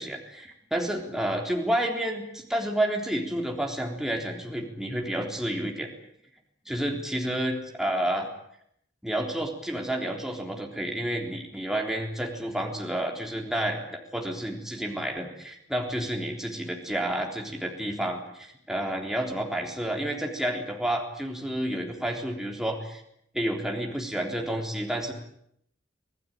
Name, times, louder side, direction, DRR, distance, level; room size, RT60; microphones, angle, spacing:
voice 1, 0.0-5.9 6.7-8.3 9.0-23.0 23.3-25.1, right 1 dB, ahead, 1 dB, 3.7 m, -30 dB
26.5 x 18.5 x 9.3 m, 0.72 s
head